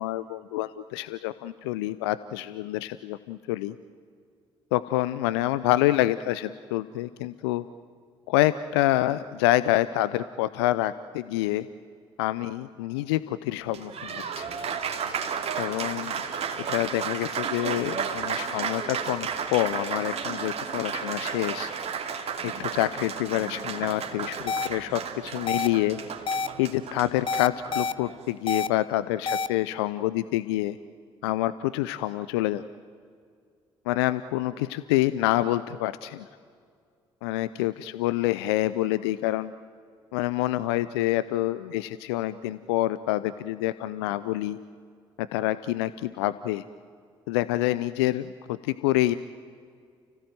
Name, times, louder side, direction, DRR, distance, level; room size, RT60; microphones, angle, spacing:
voice 1, 0.0-3.7 4.7-7.6 8.3-11.7 12.2-14.5 15.6-16.1 16.7-21.7 22.4-26.0 26.6-30.8 31.2-32.6 33.9-36.3 37.2-39.5 40.1-44.6 45.2-46.6 47.3-49.1, left 15 dB, 80° left, 15 dB, 0.5 m, -27 dB
Applause, 13.6-28.3, right 6 dB, 55° right, 2.8 m, -33 dB
sound 1, 24.5-24.7 25.5-25.7 26.3-26.5 27.3-27.9 28.5-28.7 29.3-29.5, left 4 dB, 40° left, 0.9 m, -27 dB
29.5 x 16.5 x 9.3 m, 2.1 s
hypercardioid pair, 50°, 13 cm